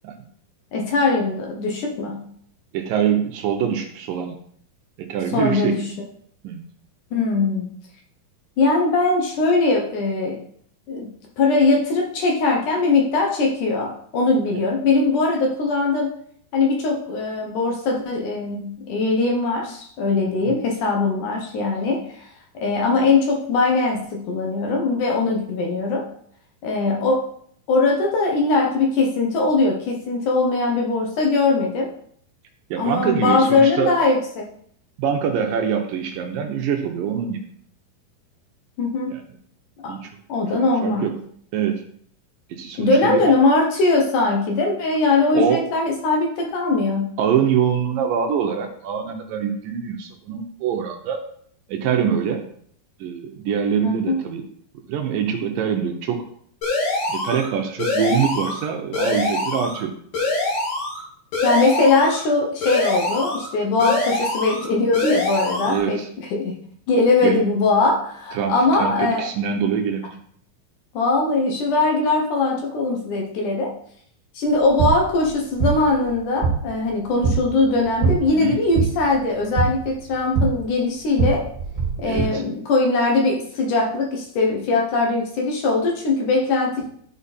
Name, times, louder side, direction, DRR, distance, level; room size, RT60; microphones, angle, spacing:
voice 1, 0.7-2.2 5.3-5.9 7.1-7.7 8.6-10.4 10.9-16.1 16.5-22.0 22.5-26.1 26.6-27.3 27.7-31.9 32.8-34.5 38.8-39.1 39.8-39.9 40.3-41.1 42.8-47.1 53.8-54.2 61.4-66.0 66.3-66.5 66.9-69.3 70.9-73.7 74.3-81.5 82.0-86.9, left 3 dB, 65° left, 0 dB, 2.4 m, -21 dB
voice 2, 2.7-4.4 5.0-5.8 6.4-6.7 20.4-20.5 32.7-33.9 35.0-37.4 39.1-39.2 39.9-40.1 40.5-41.2 41.5-41.8 42.5-43.3 45.3-45.7 47.2-51.2 51.7-52.4 53.0-54.5 54.9-56.2 57.1-59.9 65.7-66.1 67.2-67.4 68.3-70.1 78.3-78.6 82.1-82.4, right 8 dB, 75° right, 3 dB, 2.3 m, -24 dB
sound 1, 56.6-57.5 57.8-58.6 58.9-59.8 60.1-61.0 61.3-62.2 62.6-63.5 63.8-64.7 64.9-65.8, left 2 dB, 90° left, 5.6 m, -24 dB
sound 2, 74.5-82.2, right 5 dB, 20° right, 3.1 m, -25 dB
11.5 x 4.8 x 4.2 m, 0.63 s
omnidirectional pair, 4.4 m